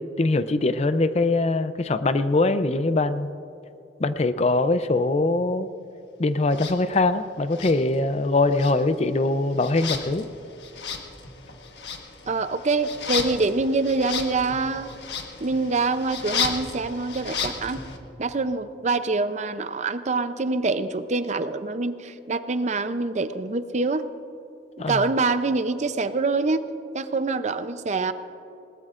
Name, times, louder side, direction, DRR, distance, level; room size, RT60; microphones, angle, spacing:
voice 1, 0.0-3.3 4.0-5.7 6.2-10.3 24.8-25.0, left 2 dB, 35° left, 12 dB, 0.5 m, -22 dB
sound 1, 6.5-6.8 7.5-8.3 8.5-18.0, left 6 dB, 70° left, 1.5 m, -33 dB
voice 2, 12.3-14.9 15.4-17.8 18.2-24.1 24.9-26.7 26.9-28.1, right 3 dB, 40° right, 11 dB, 0.6 m, -25 dB
21.0 x 19.0 x 2.5 m, 2.9 s
head